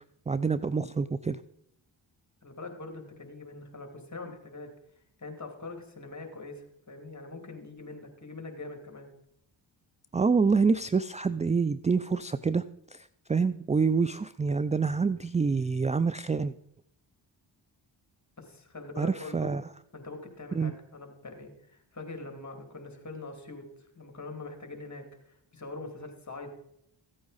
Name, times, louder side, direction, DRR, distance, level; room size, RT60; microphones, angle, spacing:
voice 1, 0.3-1.4 10.1-12.6 12.9-16.5 19.0-19.6 20.5-20.7, right 5 dB, 15° right, 15 dB, 0.3 m, -27 dB
voice 2, 2.4-4.7 5.2-9.1 18.4-19.5 19.9-23.6 23.9-26.5, left 3 dB, 35° left, 4 dB, 2.7 m, -43 dB
15.5 x 8.6 x 4.1 m, 0.75 s
cardioid pair, 45°, 49 cm